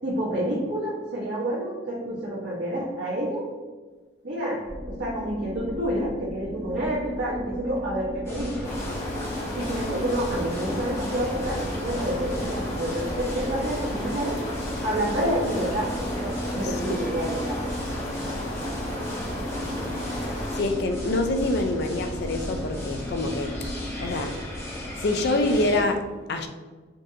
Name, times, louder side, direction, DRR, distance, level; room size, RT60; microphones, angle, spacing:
voice 1, 0.0-3.5 4.2-8.7 9.5-14.4 14.8-17.6, right 1 dB, 70° right, 1.0 m, -29 dB
sound 1, 4.6-24.2, equal, 20° right, 0.9 m, -36 dB
sound 2, 8.2-25.8, left 1 dB, 15° left, 0.7 m, -36 dB
sound 3, 8.6-20.6, left 1 dB, 40° left, 1.1 m, -34 dB
voice 2, 20.5-23.7 24.0-24.4 25.0-26.5, left 2 dB, 60° left, 0.4 m, -26 dB
5.2 x 2.5 x 2.7 m
head